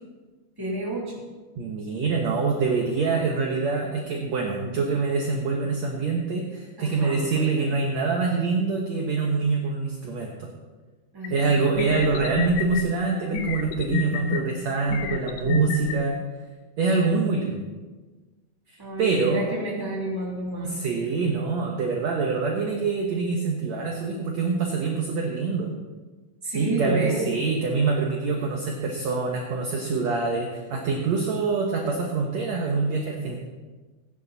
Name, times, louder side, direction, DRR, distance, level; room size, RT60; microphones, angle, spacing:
voice 1, 0.6-1.2 6.8-7.8 11.1-12.3 18.8-21.0 26.4-27.3, right 1 dB, 5° right, -4 dB, 2.5 m, -30 dB
voice 2, 1.6-10.5 11.3-16.2 16.8-17.6 18.7-19.5 20.6-25.7 26.5-33.5, right 4 dB, 60° right, 0 dB, 2.0 m, -25 dB
sound 1, 11.2-11.3 11.8-12.8 13.3-14.4 14.9-16.0, left 8 dB, 75° left, 2.2 m, -28 dB
16.5 x 10.5 x 4.1 m, 1.3 s
omnidirectional pair, 4.2 m